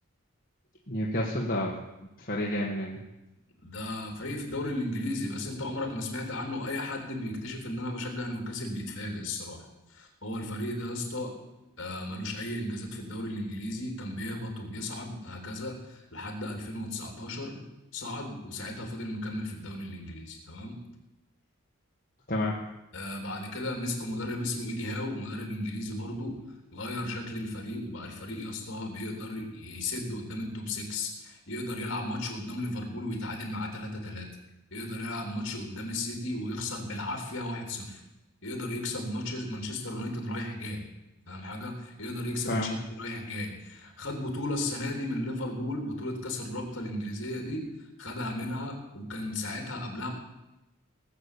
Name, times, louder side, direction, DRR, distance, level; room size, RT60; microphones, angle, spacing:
voice 1, 0.9-1.7 2.2-3.0 22.3-22.6 42.5-42.8, left 1 dB, 40° left, -3 dB, 1.7 m, -29 dB
voice 2, 3.6-9.6 9.9-11.3 11.8-17.6 17.9-20.8 22.9-26.4 26.7-34.3 34.7-38.0 38.4-40.8 41.3-47.7 48.0-50.1, left 1 dB, 55° left, 2 dB, 3.5 m, -35 dB
19.0 x 7.1 x 8.5 m, 0.96 s
head